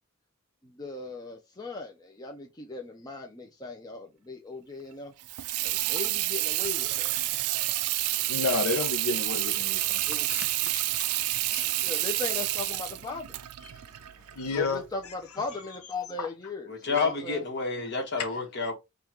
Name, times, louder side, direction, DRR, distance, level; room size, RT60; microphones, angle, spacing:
voice 1, 0.6-5.1 5.6-7.2 10.1-10.4 11.8-13.4 14.5-17.4, left 3 dB, 15° left, 0.5 m, -38 dB
Water tap faucet / Sink (filling or washing), 5.2-14.8, right 16 dB, 85° right, 0.4 m, -29 dB
voice 2, 8.1-10.0 10.3-11.1 11.5-11.7 13.6-13.8 14.3-14.8 16.2-16.3, left 4 dB, 75° left, 0.6 m, -32 dB
voice 3, 16.7-18.7, left 4 dB, 50° left, 1.3 m, -29 dB
5.5 x 2.4 x 2.9 m
head